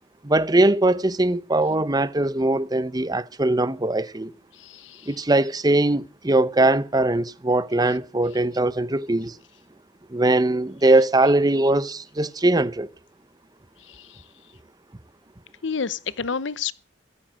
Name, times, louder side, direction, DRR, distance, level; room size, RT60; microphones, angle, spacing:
voice 1, 0.2-4.3 5.1-9.4 10.1-12.9, right 2 dB, 20° right, 0.8 m, -21 dB
voice 2, 4.6-5.1 13.9-14.2 15.6-16.7, left 6 dB, 75° left, 0.8 m, -30 dB
16.0 x 13.5 x 6.4 m
head